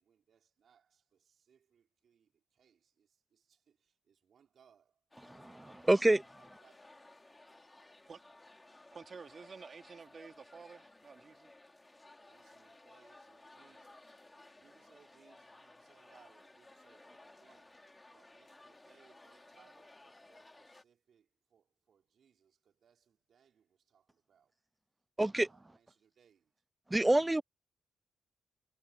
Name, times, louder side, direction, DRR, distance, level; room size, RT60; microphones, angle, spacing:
voice 1, 0.0-5.0 5.6-5.9 6.4-6.9 12.2-14.2 14.6-17.8 18.1-24.5 25.5-26.5, right 7 dB, 65° right, 5.0 m, -69 dB
sound 1, 5.1-20.8, left 2 dB, 20° left, 2.9 m, -58 dB
voice 2, 5.3-6.2 25.2-25.5 26.9-27.4, right 1 dB, 15° right, 0.4 m, -27 dB
voice 3, 8.9-11.5, right 5 dB, 50° right, 3.5 m, -51 dB
cardioid pair, 75°, 0 cm